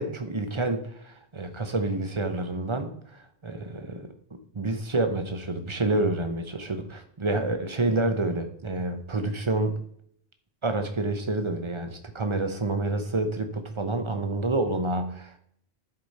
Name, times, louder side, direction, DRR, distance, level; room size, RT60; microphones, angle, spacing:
voice 1, 0.0-4.1 4.5-9.7 10.6-15.4, right 2 dB, 30° right, 7 dB, 0.9 m, -28 dB
11.5 x 5.1 x 4.2 m, 0.67 s
omnidirectional pair, 1.1 m